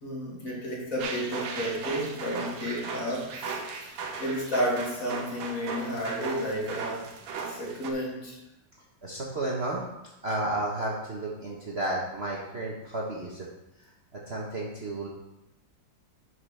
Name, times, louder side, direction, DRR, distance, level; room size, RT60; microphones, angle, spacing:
voice 1, 0.0-7.0 7.5-8.4, equal, 45° left, -4 dB, 2.6 m, -32 dB
sound 1, 1.0-7.9, right 4 dB, 85° right, 1.6 m, -37 dB
voice 2, 9.0-9.8 10.2-13.5 14.1-15.1, right 2 dB, 40° right, -4 dB, 1.2 m, -32 dB
11.0 x 5.9 x 3.4 m, 0.90 s
omnidirectional pair, 2.1 m